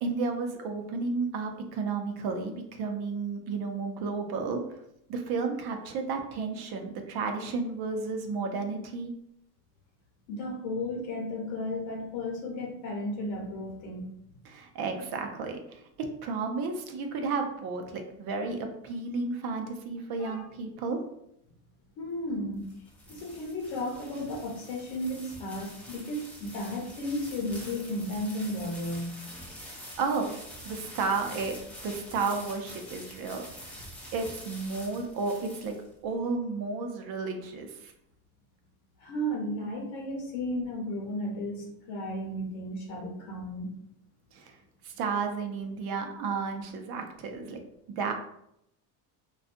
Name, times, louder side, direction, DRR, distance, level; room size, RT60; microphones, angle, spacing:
voice 1, 0.0-4.6 5.1-9.1 14.5-21.0 29.6-30.4 30.6-31.6 31.8-33.4 34.1-35.7 36.0-37.9 44.3-44.6 44.8-47.6 48.0-48.1, right 4 dB, 50° right, 5 dB, 0.5 m, -32 dB
voice 2, 10.3-14.0 20.2-20.4 22.0-22.6 23.1-29.2 39.0-43.7, left 1 dB, 70° left, 0 dB, 1.0 m, -34 dB
sound 1, 22.3-36.1, equal, 5° left, 0.5 m, -46 dB
2.5 x 2.3 x 2.5 m, 0.77 s
supercardioid pair, 110°, 48 cm